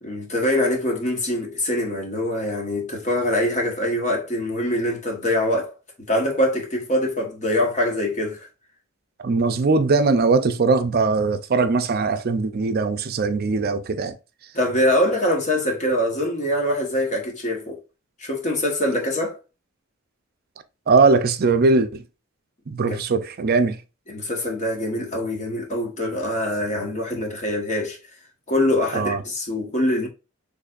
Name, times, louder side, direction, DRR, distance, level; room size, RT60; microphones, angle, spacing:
voice 1, 0.0-5.7 6.0-8.5 14.5-17.8 18.2-19.4 22.9-23.0 24.1-28.0 28.5-30.1, left 1 dB, 35° left, 1.2 m, -24 dB
voice 2, 9.2-14.1 20.9-22.0 22.7-23.8 28.9-29.2, right 4 dB, 50° right, 0.5 m, -20 dB
4.0 x 3.2 x 2.4 m
head